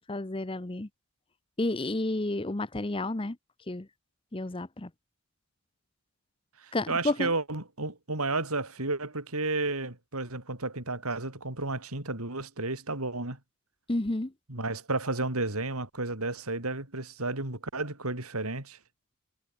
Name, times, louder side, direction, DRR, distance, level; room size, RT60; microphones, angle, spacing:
voice 1, 0.1-0.9 1.6-3.4 3.7-3.9 4.3-4.9 6.7-7.3 13.9-14.3, left 2 dB, 25° left, 0.8 m, -31 dB
voice 2, 6.6-13.4 14.5-18.8, right 2 dB, 85° right, 4.6 m, -32 dB
head